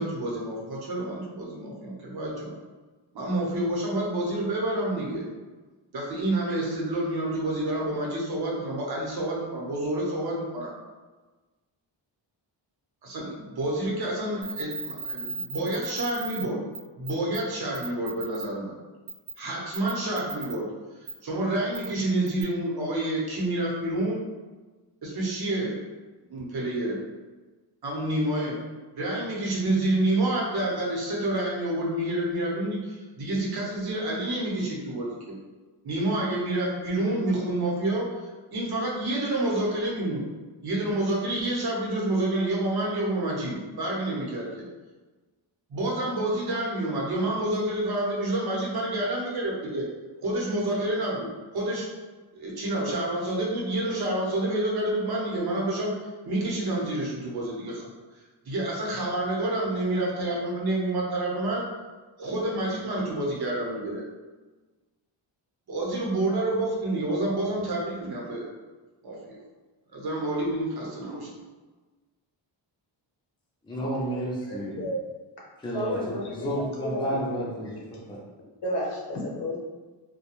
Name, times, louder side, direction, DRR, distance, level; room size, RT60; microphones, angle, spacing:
voice 1, 0.0-2.5 3.1-5.2 5.9-10.7 13.0-16.6 17.0-18.7 19.4-20.7 21.0-24.2 25.0-25.8 26.3-27.0 27.8-28.6 29.0-35.4 35.8-40.2 40.6-44.7 45.7-49.8 50.2-51.3 51.5-51.9 52.3-56.0 56.3-57.9 58.5-61.6 62.2-64.0 65.7-68.5 69.0-69.2 69.9-71.3, right 1 dB, 55° right, -4 dB, 0.8 m, -28 dB
sound 1, 14.4-16.4 16.7-16.8 17.0-17.4 17.7-18.4 19.1-19.3 19.7-20.5 21.1-21.2 21.7-21.9 22.3-22.4, right 4 dB, 85° right, 0.8 m, -35 dB
voice 2, 73.6-74.8 75.6-78.2, right 1 dB, 10° left, -5 dB, 0.4 m, -31 dB
voice 3, 74.5-75.0 75.7-76.3 76.8-77.2 78.6-79.6, left 1 dB, 55° left, -3 dB, 0.8 m, -31 dB
2.3 x 2.2 x 2.9 m, 1.3 s
wide cardioid pair, 130°, 47 cm